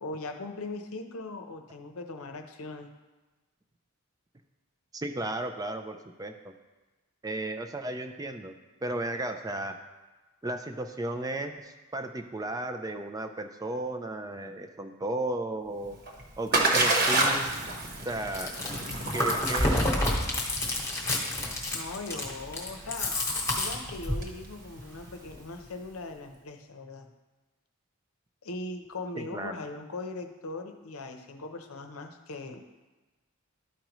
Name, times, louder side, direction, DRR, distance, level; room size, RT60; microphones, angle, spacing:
voice 1, 0.0-2.9 21.7-23.1 23.6-27.1 28.4-32.6, left 2 dB, 70° left, 5 dB, 0.8 m, -39 dB
voice 2, 4.9-6.5 7.2-8.5 8.8-9.8 10.4-16.0 16.4-17.5 18.1-18.5 19.1-19.8 29.2-29.5, right 1 dB, 15° right, 7 dB, 0.4 m, -34 dB
Splash splatter, 15.8-25.7, right 2 dB, 45° right, 1.2 m, -30 dB
Chewing mastication, 18.2-24.3, left 1 dB, 15° left, 1.2 m, -29 dB
12.5 x 5.1 x 3.0 m, 1.2 s
head